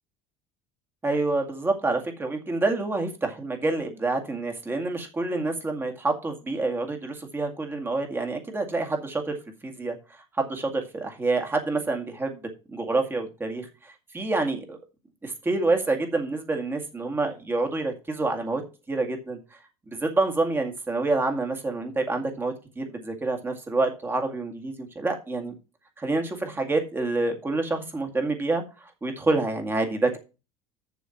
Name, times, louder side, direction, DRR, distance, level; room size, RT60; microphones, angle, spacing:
voice 1, 1.0-9.3 9.6-10.0 10.4-12.4 12.7-14.8 15.2-18.6 18.9-19.6 19.9-25.5 26.0-30.2, right 3 dB, 15° right, 4 dB, 2.1 m, -27 dB
7.0 x 6.6 x 5.8 m, 0.32 s
supercardioid pair, 110°, 12 cm